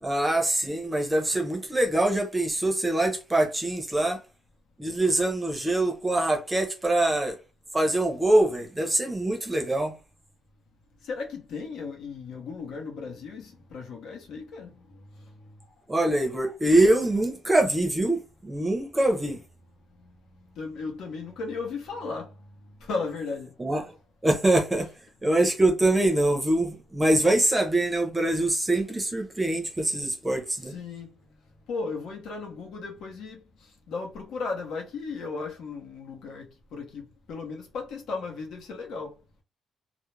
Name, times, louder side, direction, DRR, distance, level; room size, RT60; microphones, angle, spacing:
voice 1, 0.0-4.2 4.8-7.4 7.7-9.9 15.9-19.4 23.6-23.8 24.2-24.9 25.2-30.7, right 1 dB, 10° right, 0.6 m, -24 dB
voice 2, 11.0-15.1 20.0-20.1 20.5-22.4 22.8-23.5 30.6-31.2 31.7-33.4 33.9-39.1, left 4 dB, 80° left, 0.8 m, -36 dB
2.4 x 2.0 x 3.1 m
cardioid pair, 150°, 0 cm